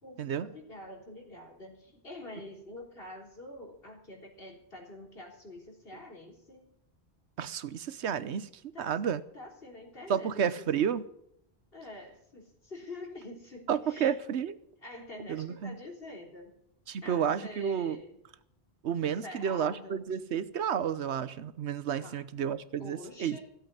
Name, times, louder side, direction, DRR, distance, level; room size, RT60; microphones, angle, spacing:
voice 1, 0.0-6.7 8.7-9.0 9.3-10.3 10.6-10.7 11.7-14.1 14.8-16.5 17.0-18.2 19.0-20.0 21.9-22.2 22.8-23.4, left 2 dB, 60° left, 3.9 m, -46 dB
voice 2, 7.4-8.5 8.8-9.2 10.1-11.0 13.7-14.6 15.3-15.8 16.9-18.0 18.8-23.4, right 8 dB, 85° right, 1.1 m, -31 dB
15.5 x 8.0 x 9.6 m
omnidirectional pair, 1.1 m